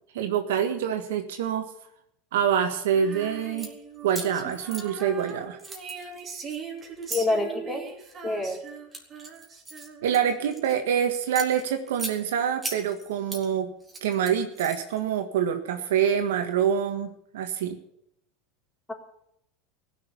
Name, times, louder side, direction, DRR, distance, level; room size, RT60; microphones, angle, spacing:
voice 1, 0.1-1.7 2.3-3.7 4.0-5.6 10.0-13.7 14.0-17.8, right 8 dB, 75° right, 6 dB, 1.6 m, -26 dB
Female singing, 2.9-10.3, right 6 dB, 30° right, 3.1 m, -40 dB
sound 1, 3.4-3.7 4.1-5.3 5.6-7.2 7.9-8.2 8.7-10.7 11.1-12.2 12.6-13.4 13.8-15.0, right 3 dB, 15° right, 3.1 m, -38 dB
voice 2, 7.1-7.8 8.2-8.6, left 2 dB, 10° left, 0 dB, 3.9 m, -26 dB
16.0 x 6.7 x 9.8 m, 0.76 s
hypercardioid pair, 95°, 0 cm